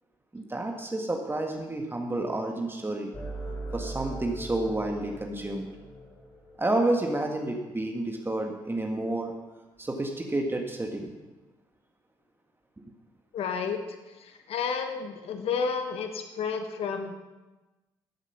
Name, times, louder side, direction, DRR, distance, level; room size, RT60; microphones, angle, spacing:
voice 1, 0.3-3.1 3.7-5.7 6.6-9.3 9.8-11.1, right 2 dB, 20° right, 2 dB, 1.7 m, -30 dB
sound 1, 3.1-7.2, right 2 dB, 25° left, 3.6 m, -40 dB
voice 2, 13.3-13.8 14.2-17.1, left 6 dB, 60° left, 6 dB, 1.2 m, -31 dB
12.5 x 7.9 x 5.9 m, 1.1 s
hypercardioid pair, 45°, 11 cm